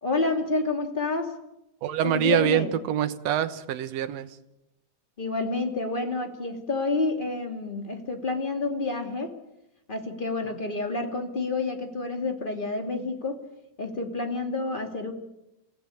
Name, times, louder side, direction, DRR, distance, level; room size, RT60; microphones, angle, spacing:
voice 1, 0.0-1.4 2.0-2.7 5.2-9.3 9.9-13.4 13.8-15.1, left 3 dB, 15° left, 5 dB, 2.5 m, -29 dB
voice 2, 1.8-4.3, right 11 dB, 65° right, 10 dB, 2.2 m, -25 dB
29.0 x 15.5 x 8.8 m, 0.89 s
omnidirectional pair, 3.4 m